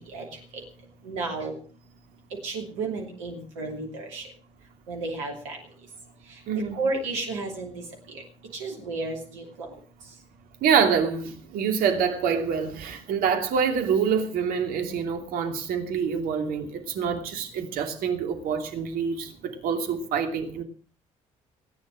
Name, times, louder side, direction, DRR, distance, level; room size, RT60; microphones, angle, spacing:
voice 1, 1.1-1.5 2.4-4.2 4.9-5.6 6.8-7.7 8.6-9.7, right 3 dB, 85° right, 2.8 m, -32 dB
voice 2, 6.5-6.8 10.6-20.6, right 6 dB, 70° right, 2.8 m, -26 dB
18.5 x 10.0 x 6.3 m
hypercardioid pair, 45°, 16 cm